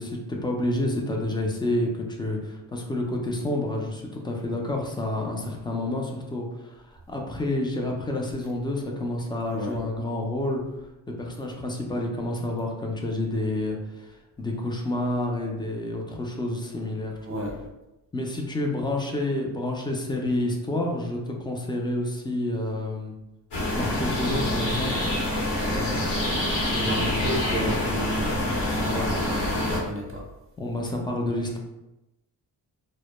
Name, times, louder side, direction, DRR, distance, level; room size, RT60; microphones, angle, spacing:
voice 1, 0.0-17.4 18.1-23.1 23.7-25.1 25.4-26.0 26.9-27.2 27.5-27.8 28.9-29.1 30.6-31.6, left 1 dB, 10° left, 0 dB, 0.3 m, -29 dB
sound 1, 23.5-29.8, left 1 dB, 80° left, 1.0 m, -26 dB
voice 2, 26.7-30.3, right 1 dB, 30° right, -1 dB, 0.7 m, -33 dB
2.1 x 2.1 x 2.9 m, 0.96 s
cardioid pair, 95°, 41 cm